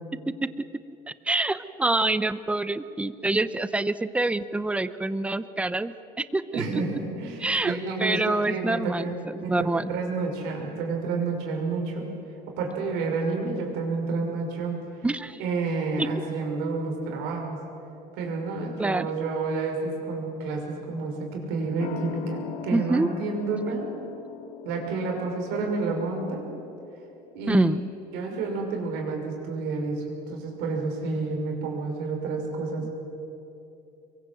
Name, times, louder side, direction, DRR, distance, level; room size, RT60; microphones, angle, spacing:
voice 1, 1.3-6.8 7.4-9.9 15.0-15.4 16.0-16.1 18.8-19.1 22.7-23.1 27.5-27.9, right 2 dB, 5° right, 14 dB, 0.7 m, -26 dB
voice 2, 6.5-9.1 9.4-12.1 12.6-14.8 15.4-17.6 18.2-23.9 24.6-26.5 27.3-27.7 28.1-32.9, right 3 dB, 85° right, 1 dB, 6.0 m, -30 dB
sound 1, 21.8-28.9 29.2-29.3, left 8 dB, 65° left, 2.4 m, -42 dB
27.5 x 23.0 x 7.8 m, 2.8 s
cardioid pair, 140°, 17 cm